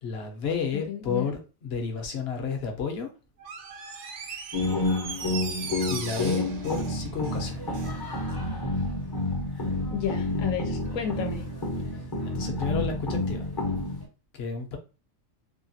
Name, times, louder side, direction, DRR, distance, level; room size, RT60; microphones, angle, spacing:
voice 1, 0.0-3.1 5.9-7.7 12.2-13.5 14.3-14.8, left 6 dB, 55° left, 4 dB, 0.9 m, -31 dB
voice 2, 0.9-1.3 9.9-11.4, left 7 dB, 85° left, 3 dB, 1.0 m, -32 dB
Door, 3.4-8.0 8.3-8.4, right 5 dB, 65° right, 0.8 m, -39 dB
sound 1, 4.5-14.0, left 2 dB, 25° left, 0.6 m, -29 dB
3.0 x 2.4 x 2.7 m, 0.32 s
omnidirectional pair, 1.4 m